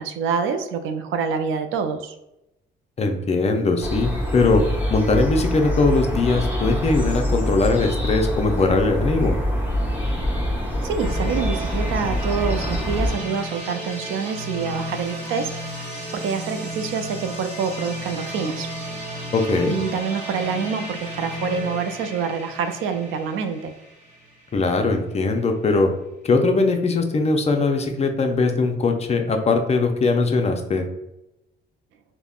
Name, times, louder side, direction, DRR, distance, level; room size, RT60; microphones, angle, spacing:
voice 1, 0.0-2.1 10.8-15.5 15.8-18.7 19.4-23.7, right 6 dB, 85° right, 8 dB, 0.4 m, -26 dB
voice 2, 3.0-4.6 4.9-9.4 19.3-19.8 24.5-25.9 26.2-30.9, left 3 dB, 35° left, 4 dB, 0.5 m, -20 dB
sound 1, 3.8-13.1, equal, 10° right, 0.9 m, -25 dB
sound 2, 11.0-24.7, equal, 40° right, 1.2 m, -33 dB
3.4 x 2.1 x 2.3 m, 0.90 s
cardioid pair, 90°, 20 cm